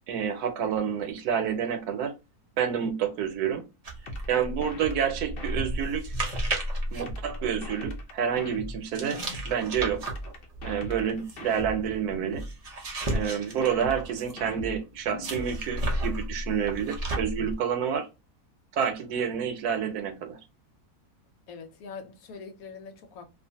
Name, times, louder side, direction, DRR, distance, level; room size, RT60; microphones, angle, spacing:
voice 1, 0.1-2.1 2.6-3.7 4.3-6.0 6.9-10.0 10.6-12.4 13.1-18.1 18.7-20.4, right 8 dB, 80° right, 1.1 m, -29 dB
sound 1, 3.8-8.0 8.9-14.5 15.2-17.5, right 1 dB, 60° right, 0.4 m, -33 dB
sound 2, 4.1-6.5 7.1-9.5 10.1-12.5 13.1-15.5, left 1 dB, 55° left, 0.7 m, -39 dB
voice 2, 21.5-23.3, left 5 dB, 70° left, 1.1 m, -43 dB
2.5 x 2.4 x 2.6 m
omnidirectional pair, 1.6 m